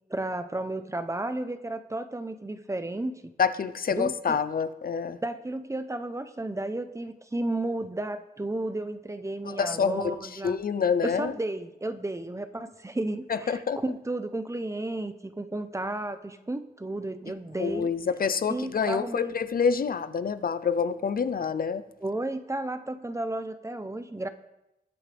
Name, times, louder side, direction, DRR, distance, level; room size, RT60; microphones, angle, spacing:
voice 1, 0.1-3.3 3.9-4.4 5.2-10.6 11.0-17.9 18.5-19.3 22.0-24.3, right 2 dB, 20° right, 10 dB, 0.8 m, -33 dB
voice 2, 3.4-5.2 9.4-11.3 13.3-13.8 17.6-21.8, left 6 dB, 65° left, 13 dB, 0.6 m, -27 dB
21.5 x 8.6 x 3.5 m, 0.88 s
wide cardioid pair, 130°, 16 cm